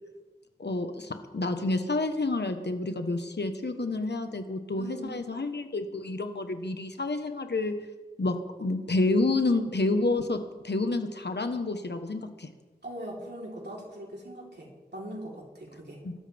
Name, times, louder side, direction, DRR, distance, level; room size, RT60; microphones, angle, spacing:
voice 1, 0.6-7.7 8.2-12.5 16.0-16.1, left 2 dB, 85° left, 7 dB, 1.3 m, -29 dB
voice 2, 4.8-5.1 12.8-16.0, right 1 dB, 85° right, -3 dB, 3.9 m, -41 dB
24.0 x 13.0 x 3.6 m, 1.2 s
wide cardioid pair, 50°, 17 cm